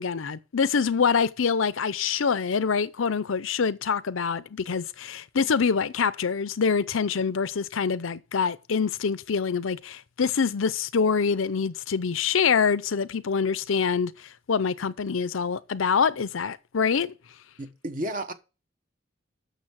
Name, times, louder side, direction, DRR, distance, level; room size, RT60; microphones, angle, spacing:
voice 1, 0.0-17.1, left 6 dB, 85° left, 0.6 m, -25 dB
voice 2, 17.6-18.3, right 1 dB, 40° right, 1.2 m, -32 dB
9.0 x 6.5 x 6.1 m
head